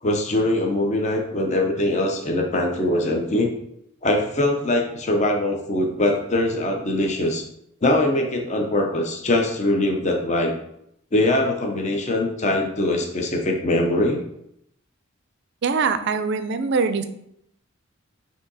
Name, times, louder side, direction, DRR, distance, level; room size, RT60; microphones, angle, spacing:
voice 1, 0.0-3.5 4.0-7.4 7.8-10.5 11.1-14.2, left 1 dB, 30° left, 2 dB, 0.5 m, -22 dB
voice 2, 15.6-17.0, right 5 dB, 50° right, 9 dB, 0.4 m, -22 dB
4.9 x 2.7 x 3.9 m, 0.75 s
head